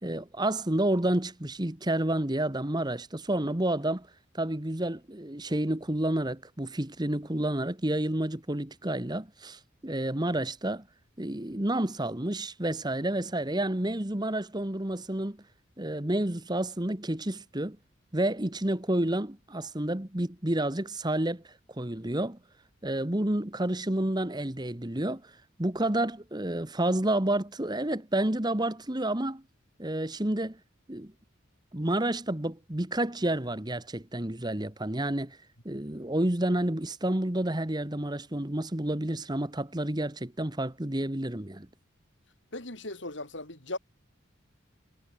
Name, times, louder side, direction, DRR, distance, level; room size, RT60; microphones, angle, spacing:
voice 1, 0.0-4.1 4.3-10.8 11.2-15.4 15.8-17.8 18.1-22.4 22.8-29.4 29.8-30.6 30.9-31.1 31.7-35.4 35.6-41.7, right 1 dB, 20° right, 1.4 m, -30 dB
voice 2, 42.5-43.8, left 2 dB, 60° left, 5.5 m, -37 dB
head